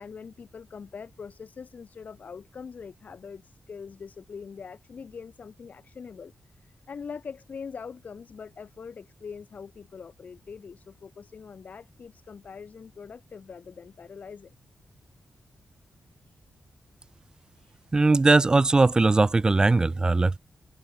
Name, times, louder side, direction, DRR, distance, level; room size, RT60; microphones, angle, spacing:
voice 1, 0.0-14.6 16.3-16.4 17.6-17.8, left 6 dB, 55° left, 2.3 m, -43 dB
voice 2, 17.9-20.4, right 3 dB, 25° right, 0.4 m, -20 dB
cardioid pair, 95°, 3 cm